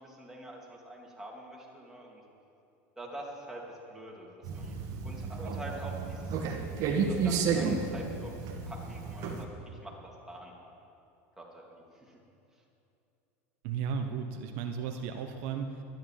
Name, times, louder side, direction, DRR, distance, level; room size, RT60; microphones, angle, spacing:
voice 1, 0.0-2.2 3.0-4.8 5.0-6.4 6.7-10.5 11.4-12.2, right 1 dB, 5° right, -3 dB, 3.1 m, -46 dB
sound 1, 4.4-9.4, right 5 dB, 50° right, 1.9 m, -32 dB
voice 2, 13.6-15.8, right 6 dB, 65° right, 5 dB, 1.1 m, -35 dB
12.5 x 10.5 x 7.8 m, 2.7 s
supercardioid pair, 110°, 8 cm